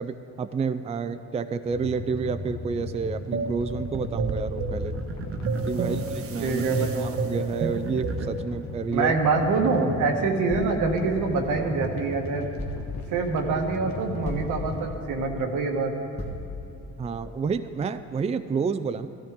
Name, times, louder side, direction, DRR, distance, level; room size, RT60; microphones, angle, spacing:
voice 1, 0.0-5.0 5.7-9.1 17.0-19.1, right 5 dB, 20° right, 11 dB, 0.4 m, -30 dB
sound 1, 1.7-14.9, left 4 dB, 65° left, 1.1 m, -38 dB
sound 2, 3.3-8.5, right 4 dB, 50° right, 0.9 m, -30 dB
voice 2, 5.7-6.0 6.4-7.1 8.9-12.5 13.1-15.9, right 4 dB, 85° right, 2 dB, 1.4 m, -25 dB
sound 3, 10.5-11.9 12.6-13.4 14.2-15.1 16.2-17.0, left 1 dB, 20° left, 1.6 m, -37 dB
15.0 x 13.0 x 3.6 m, 2.5 s
cardioid pair, 90°, 30 cm